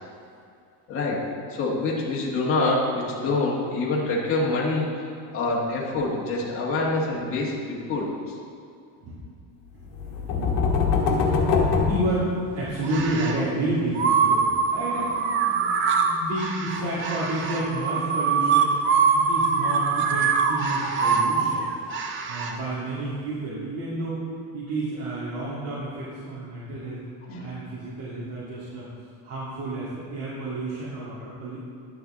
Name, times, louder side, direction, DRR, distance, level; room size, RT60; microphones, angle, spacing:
voice 1, 0.9-1.2 1.5-4.9 5.3-8.1 27.3-27.5, left 2 dB, 30° left, -4 dB, 1.5 m, -26 dB
voice 2, 9.7-11.5 11.8-21.6 22.3-24.2 24.5-27.0 27.4-28.9 29.2-31.6, right 1 dB, 70° right, -9 dB, 2.2 m, -31 dB
sound 1, 9.9-12.8, left 4 dB, 60° left, 1.4 m, -23 dB
sound 2, 12.8-13.4 13.9-22.5, right 5 dB, 30° right, 0.4 m, -23 dB
10.5 x 6.9 x 3.7 m, 2.3 s
cardioid pair, 175°, 46 cm